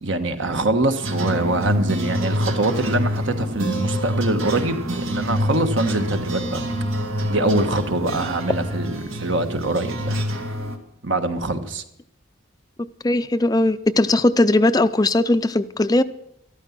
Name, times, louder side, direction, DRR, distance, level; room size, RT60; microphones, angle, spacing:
voice 1, 0.0-6.7 7.3-10.2 11.0-11.8, right 2 dB, 70° right, 1.4 m, -23 dB
sound 1, 1.0-10.8, equal, 90° right, 2.1 m, -26 dB
voice 2, 13.0-16.0, left 2 dB, 20° left, 0.4 m, -18 dB
13.5 x 13.5 x 5.9 m
head